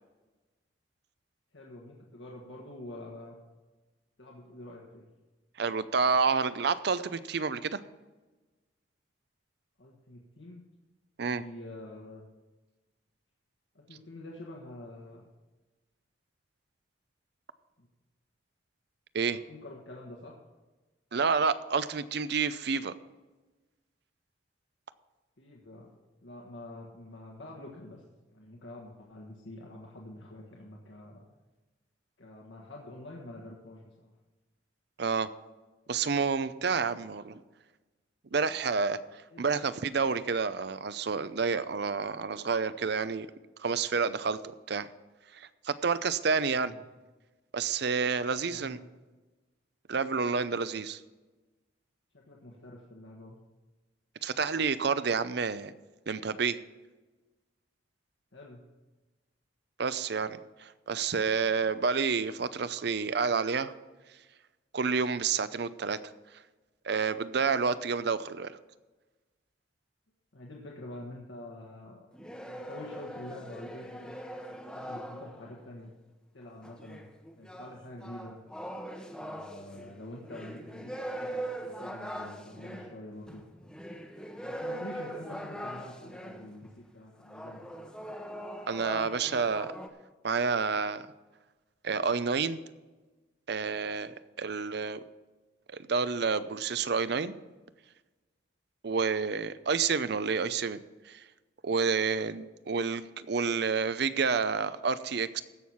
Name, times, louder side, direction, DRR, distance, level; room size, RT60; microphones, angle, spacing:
voice 1, 1.5-3.4 4.2-5.1 9.8-10.6 11.3-12.3 13.7-15.3 17.8-17.9 19.3-20.4 25.4-25.9 26.2-28.0 28.3-31.2 32.2-34.1 39.3-39.7 46.6-46.8 48.3-48.8 52.1-53.4 58.3-58.6 70.3-72.1 72.5-74.2 74.5-75.9 76.3-77.1 77.4-78.4 79.2-83.4 84.4-87.9, left 1 dB, 75° left, -2 dB, 1.5 m, -46 dB
voice 2, 5.6-7.8 11.2-11.4 19.1-19.4 21.1-22.9 35.0-35.3 35.9-37.4 38.3-39.0 39.4-43.3 43.6-44.4 44.7-44.9 45.3-46.7 47.5-48.8 49.9-51.0 54.2-55.7 56.1-56.6 59.8-63.7 64.7-66.0 66.8-68.6 88.7-89.7 90.2-91.0 91.8-92.6 93.5-95.0 95.7-97.4 98.8-100.8 101.1-101.2 101.6-105.4, right 5 dB, 60° right, 14 dB, 0.6 m, -29 dB
sound 1, 72.1-75.6 76.6-86.5 87.2-89.9, right 1 dB, 5° left, 0.9 m, -41 dB
15.5 x 6.4 x 5.7 m, 1.2 s
head